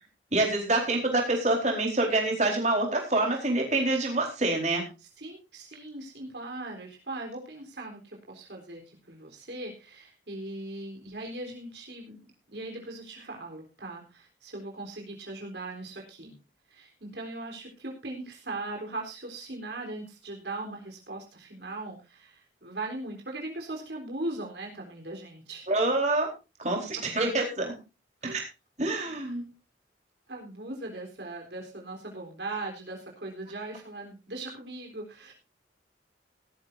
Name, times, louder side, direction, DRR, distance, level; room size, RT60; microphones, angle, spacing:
voice 1, 0.3-4.8 25.7-26.3 26.6-27.7 28.2-28.4 28.8-29.4, right 2 dB, 40° right, 1 dB, 4.3 m, -26 dB
voice 2, 5.2-8.0 8.3-12.2 12.5-16.4 16.7-25.7 26.8-26.9 28.2-28.4 30.3-35.3, right 2 dB, 70° right, 0 dB, 3.9 m, -39 dB
18.0 x 13.0 x 2.7 m, 0.28 s
head